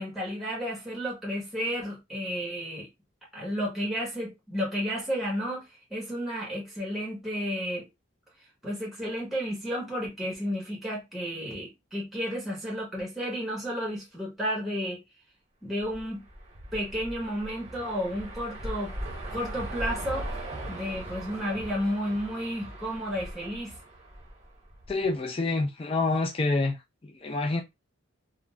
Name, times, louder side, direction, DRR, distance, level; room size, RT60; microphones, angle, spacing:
voice 1, 0.0-2.9 3.3-5.6 5.9-7.9 8.6-15.0 15.6-16.2 16.7-18.9 19.3-20.2 20.7-23.7, equal, ahead, 0.9 m, -32 dB
sound 1, 15.8-25.0, right 1 dB, 30° right, 0.7 m, -39 dB
voice 2, 24.9-26.8 27.2-27.6, left 3 dB, 25° left, 0.3 m, -27 dB
3.7 x 2.0 x 2.2 m
head